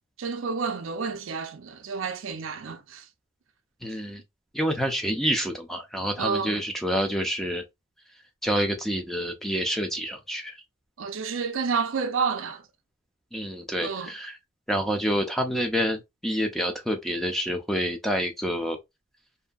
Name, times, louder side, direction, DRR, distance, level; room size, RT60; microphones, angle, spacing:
voice 1, 0.2-3.1 6.2-6.6 11.0-12.6 13.8-14.1, right 5 dB, 65° right, 0.5 m, -30 dB
voice 2, 3.8-4.2 4.5-7.6 8.4-10.5 13.3-14.4 14.7-18.8, equal, ahead, 0.4 m, -28 dB
2.7 x 2.6 x 2.2 m
head